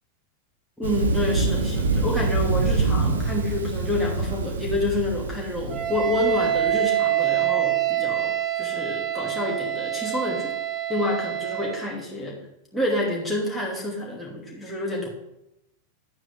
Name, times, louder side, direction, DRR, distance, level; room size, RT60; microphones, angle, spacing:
voice 1, 0.8-10.5 10.9-12.4 12.7-15.1, left 1 dB, ahead, -4 dB, 2.7 m, -28 dB
Thunder, 0.8-6.7, right 3 dB, 65° right, 1.1 m, -25 dB
Wind instrument woodwind instrument, 5.7-11.9, right 12 dB, 30° right, 0.9 m, -26 dB
10.5 x 9.0 x 3.4 m, 0.86 s
figure-of-eight pair, 90°, 0 cm